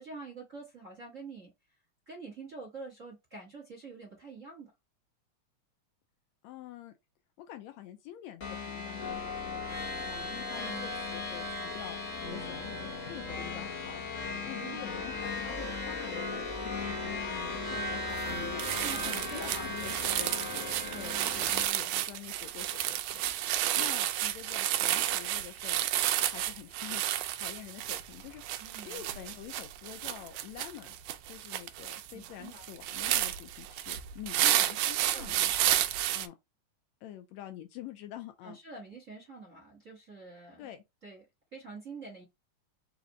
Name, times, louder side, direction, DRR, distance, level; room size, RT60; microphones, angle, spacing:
voice 1, 0.0-1.5 2.1-4.7 10.6-10.9 14.6-15.2 18.8-19.9 20.9-21.3 28.6-29.0 32.1-32.6 35.1-35.8 38.4-40.7 41.0-41.2 41.5-42.2, right 3 dB, 40° right, 1.2 m, -46 dB
voice 2, 6.4-6.9 7.4-12.0 12.3-14.0 14.5-23.2 23.5-25.8 26.3-31.0 31.3-35.5 36.1-36.4 37.0-38.6 40.6-40.8, left 12 dB, 80° left, 1.7 m, -47 dB
sound 1, 8.4-21.7, left 3 dB, 55° left, 0.9 m, -37 dB
sound 2, 18.2-18.3 18.6-36.3, right 13 dB, 85° right, 1.9 m, -31 dB
5.0 x 2.4 x 3.9 m
omnidirectional pair, 3.4 m